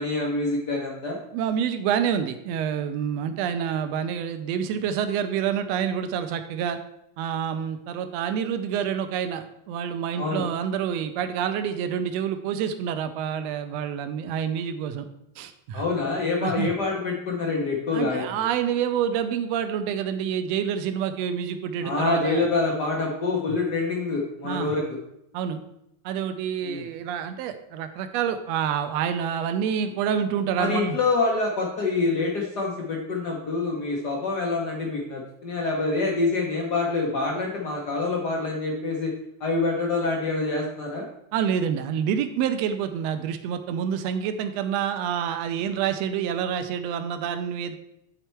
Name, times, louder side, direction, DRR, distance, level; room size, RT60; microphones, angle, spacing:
voice 1, 0.0-1.2 10.2-10.4 15.7-18.4 21.8-25.0 26.6-26.8 30.5-39.1 39.4-41.1, left 3 dB, 85° left, -1 dB, 0.9 m, -26 dB
voice 2, 1.3-6.8 7.2-15.1 15.4-15.8 16.4-16.7 17.9-22.5 24.4-24.7 25.3-25.6 26.1-31.0 41.3-47.7, right 8 dB, 80° right, 9 dB, 1.6 m, -27 dB
9.9 x 4.5 x 4.4 m, 0.80 s
omnidirectional pair, 3.4 m